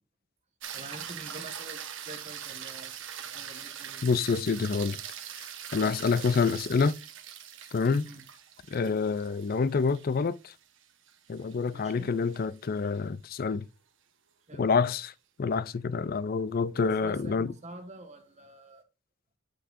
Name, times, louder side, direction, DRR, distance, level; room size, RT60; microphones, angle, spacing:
sound 1, 0.6-13.0 17.5-17.6, right 9 dB, 60° right, 1.2 m, -43 dB
voice 1, 0.7-4.0 5.7-6.2 8.0-8.2 11.7-12.1 14.5-14.7 16.7-18.9, right 2 dB, 30° right, 1.4 m, -47 dB
voice 2, 4.0-5.0 5.7-7.0 7.7-8.1 8.7-10.5 11.3-13.7 14.6-15.1 15.4-17.5, left 5 dB, 45° left, 0.4 m, -27 dB
8.7 x 5.8 x 2.5 m
head